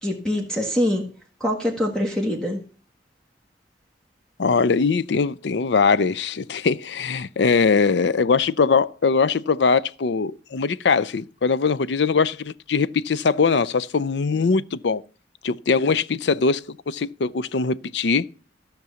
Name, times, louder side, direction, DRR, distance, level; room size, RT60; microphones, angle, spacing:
voice 1, 0.0-1.0 1.4-2.6, equal, 5° left, 1.5 m, -24 dB
voice 2, 4.4-15.0 15.4-18.2, left 5 dB, 65° left, 0.5 m, -21 dB
13.5 x 6.1 x 6.9 m
head